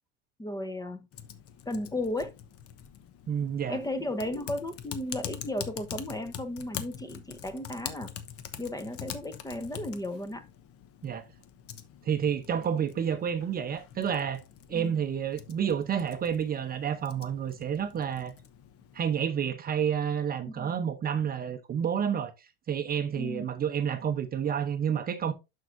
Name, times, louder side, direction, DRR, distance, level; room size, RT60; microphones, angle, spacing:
voice 1, 0.4-1.1 1.7-2.3 3.7-8.1 8.6-10.4 14.7-15.0 20.4-20.7 23.2-23.5, left 1 dB, 10° left, 1.0 m, -35 dB
Typing, 1.1-19.1, left 9 dB, 50° left, 1.0 m, -45 dB
voice 2, 3.3-3.8 11.0-11.3 12.0-14.4 14.7-18.3 18.9-25.3, right 8 dB, 30° right, 0.7 m, -30 dB
11.5 x 4.7 x 2.6 m
supercardioid pair, 110°, 31 cm